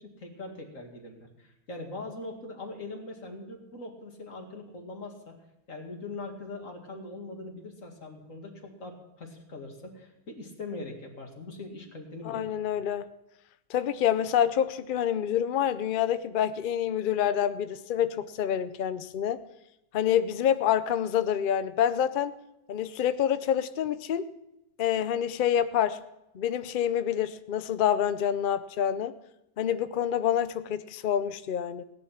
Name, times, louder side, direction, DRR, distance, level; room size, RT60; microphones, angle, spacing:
voice 1, 0.0-5.4 5.7-12.8, left 2 dB, 50° left, 1 dB, 2.5 m, -42 dB
voice 2, 12.2-13.1 13.7-19.4 19.9-22.3 22.7-24.2 24.8-26.0 26.3-29.1 29.6-31.8, left 9 dB, 85° left, 12 dB, 0.4 m, -27 dB
17.5 x 10.5 x 5.8 m, 0.89 s
omnidirectional pair, 1.7 m